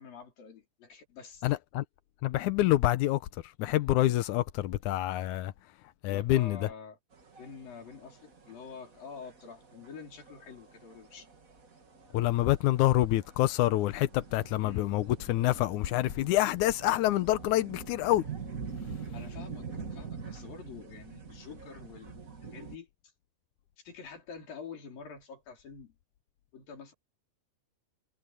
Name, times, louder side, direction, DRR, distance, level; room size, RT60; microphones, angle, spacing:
voice 1, 0.0-1.5 6.1-7.0 7.4-11.3 14.6-14.9 19.1-19.7 19.9-22.9 23.8-26.0 26.5-26.9, left 6 dB, 60° left, 6.3 m, -47 dB
voice 2, 1.4-1.8 2.2-3.2 3.6-5.5 6.0-6.7 12.1-18.3, left 15 dB, 85° left, 1.7 m, -27 dB
sound 1, 7.1-22.8, right 5 dB, 30° right, 1.7 m, -45 dB
omnidirectional pair, 4.5 m